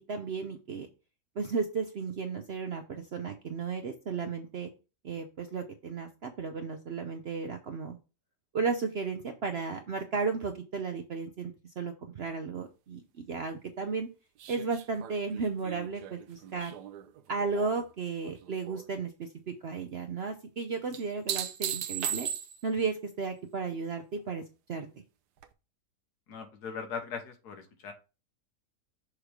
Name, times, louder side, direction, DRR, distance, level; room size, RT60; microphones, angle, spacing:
voice 1, 0.1-0.9 1.4-4.7 5.0-8.0 8.5-14.1 14.5-16.8 17.3-22.3 22.6-24.4 24.7-24.9, right 4 dB, 60° right, 6 dB, 0.7 m, -34 dB
sound 1, 14.4-17.9 18.2-18.8 20.9-22.8 25.4-25.5, right 10 dB, 75° right, 1.2 m, -37 dB
voice 2, 26.3-27.9, left 6 dB, 75° left, 5 dB, 1.6 m, -39 dB
6.5 x 3.3 x 4.7 m, 0.31 s
omnidirectional pair, 1.7 m